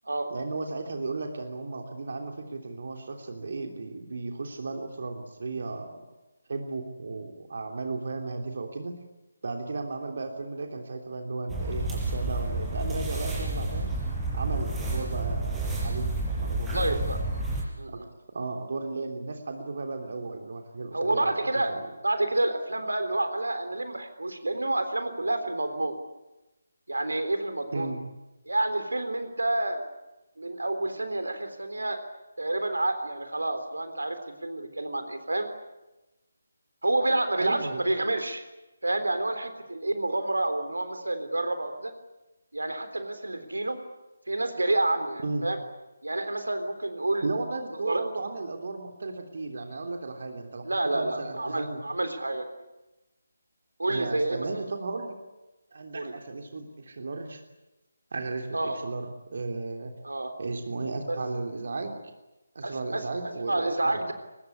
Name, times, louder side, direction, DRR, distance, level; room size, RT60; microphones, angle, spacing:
voice 1, 0.3-6.0 6.5-8.9 9.4-13.9 14.3-17.0 17.9-18.0 18.3-21.3 21.7-21.9 27.7-28.0 37.4-37.8 45.2-45.4 47.2-50.6 50.9-51.8 53.9-55.2 55.7-57.4 58.1-59.9 60.4-62.0 62.5-64.0, right 3 dB, 50° right, 3 dB, 3.1 m, -35 dB
sound 1, 11.5-17.6, right 2 dB, 5° right, 5.2 m, -30 dB
voice 2, 16.7-17.2 17.8-18.1 20.9-21.8 22.0-26.0 26.9-27.9 28.5-29.9 30.4-32.0 32.4-35.5 36.8-38.4 38.8-41.9 42.5-43.8 44.3-45.6 46.0-47.3 47.7-48.0 50.6-52.5 53.8-54.5 55.9-56.1 58.5-58.8 60.0-60.3 61.1-61.2 62.6-64.1, right 2 dB, 75° right, 9 dB, 3.6 m, -29 dB
24.0 x 20.5 x 9.8 m, 1.0 s
figure-of-eight pair, 150°, 0 cm